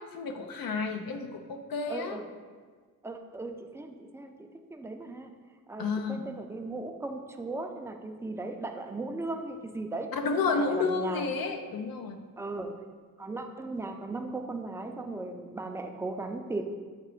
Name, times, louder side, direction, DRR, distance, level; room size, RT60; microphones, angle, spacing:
voice 1, 0.0-2.2 5.8-6.2 10.1-12.2, left 4 dB, 80° left, 6 dB, 0.6 m, -31 dB
voice 2, 1.9-2.2 3.0-5.3 5.7-10.1 10.5-11.3 12.4-12.8 13.2-16.6, right 2 dB, 10° right, 4 dB, 0.4 m, -37 dB
7.5 x 2.9 x 4.8 m, 1.5 s
cardioid pair, 100°, 35 cm